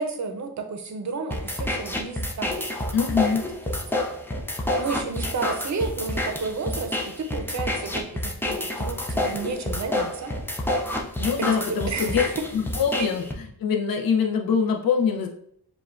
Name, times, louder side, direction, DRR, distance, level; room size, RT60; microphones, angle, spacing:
voice 1, 0.0-2.5 3.2-3.3 3.7-3.8 4.8-10.3 11.4-12.4 13.0-13.1, right 4 dB, 45° right, 6 dB, 0.7 m, -31 dB
sound 1, 1.3-13.3, left 1 dB, 5° left, 0.4 m, -29 dB
voice 2, 2.9-3.5 11.2-12.2 12.5-15.3, left 6 dB, 60° left, 2 dB, 0.6 m, -24 dB
6.8 x 2.4 x 2.5 m, 0.68 s
cardioid pair, 115°, 40 cm